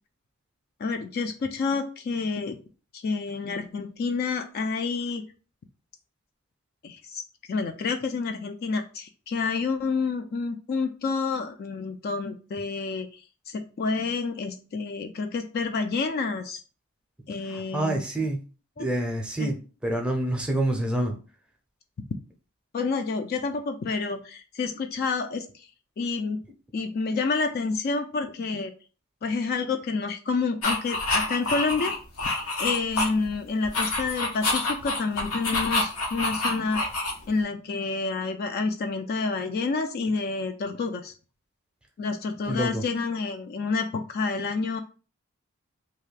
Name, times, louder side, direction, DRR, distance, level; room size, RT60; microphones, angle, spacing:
voice 1, 0.8-2.6 2.9-5.2 6.8-7.2 7.5-16.6 17.3-18.0 18.8-18.9 19.4-19.5 22.7-25.7 26.0-26.4 26.7-28.7 29.2-32.0 32.6-36.9 37.3-41.1 42.0-44.8, left 4 dB, 45° left, 6 dB, 0.3 m, -29 dB
voice 2, 17.4-18.4 18.8-21.2 42.4-42.8, right 1 dB, 5° right, 1 dB, 0.6 m, -27 dB
sound 1, 30.6-33.3 33.6-37.4, left 2 dB, 85° left, 0.9 m, -27 dB
2.6 x 2.4 x 3.2 m, 0.36 s
head